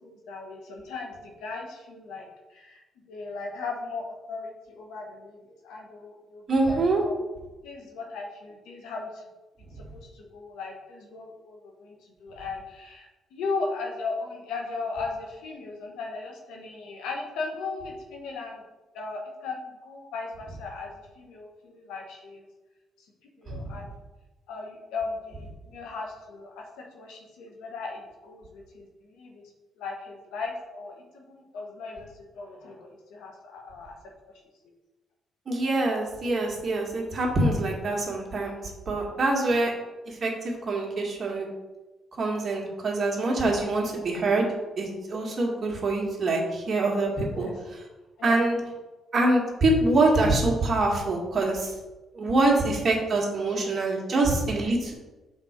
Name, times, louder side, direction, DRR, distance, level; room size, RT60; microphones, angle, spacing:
voice 1, 0.0-7.2 7.6-9.2 9.8-18.6 18.9-22.4 23.0-23.1 23.4-24.0 24.5-29.5 29.8-33.9 43.7-44.1 47.3-47.6 48.2-48.4 53.4-53.8 54.1-54.2 54.8-54.9, left 3 dB, 90° left, 1 dB, 1.4 m, -37 dB
voice 2, 6.5-7.0 23.5-23.7 35.5-39.7 40.1-41.5 42.2-44.5 44.8-47.5 48.2-48.6 49.1-51.7 52.1-54.9, right 2 dB, 40° right, -1 dB, 1.9 m, -25 dB
6.0 x 4.2 x 5.2 m, 1.1 s
cardioid pair, 90°, 0 cm